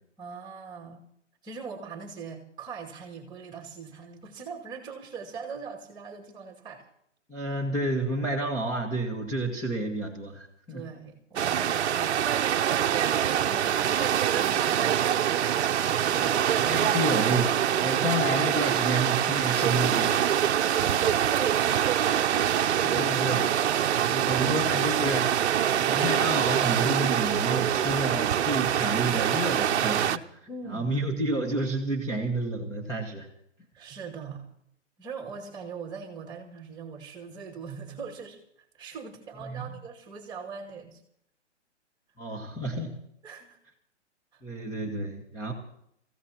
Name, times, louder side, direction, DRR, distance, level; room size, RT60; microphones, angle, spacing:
voice 1, 0.2-1.0 1.4-6.9 10.7-16.4 20.7-22.9 24.1-24.3 30.5-30.9 33.7-34.5 35.0-41.0 42.3-42.4 43.2-43.6 44.3-44.4, right 5 dB, 10° right, -1 dB, 2.3 m, -41 dB
voice 2, 7.3-10.8 16.2-20.2 22.7-23.5 24.0-25.4 25.7-30.2 30.7-33.3 39.4-39.6 42.2-43.0 44.4-45.5, right 1 dB, 10° left, -2 dB, 1.5 m, -30 dB
sound 1, 11.4-30.2, right 10 dB, 65° right, 0.8 m, -25 dB
27.0 x 15.5 x 2.9 m, 0.71 s
hypercardioid pair, 145°, 36 cm